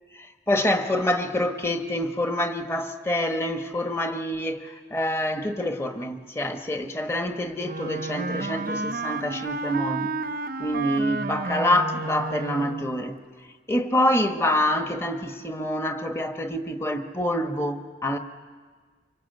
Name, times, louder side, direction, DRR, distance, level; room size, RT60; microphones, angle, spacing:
voice 1, 0.1-10.1 10.6-13.2 13.7-18.2, left 1 dB, 15° left, 6 dB, 1.2 m, -26 dB
Wind instrument woodwind instrument, 7.6-13.0, right 3 dB, 50° right, 0.7 m, -31 dB
26.0 x 24.0 x 8.1 m, 1.5 s
head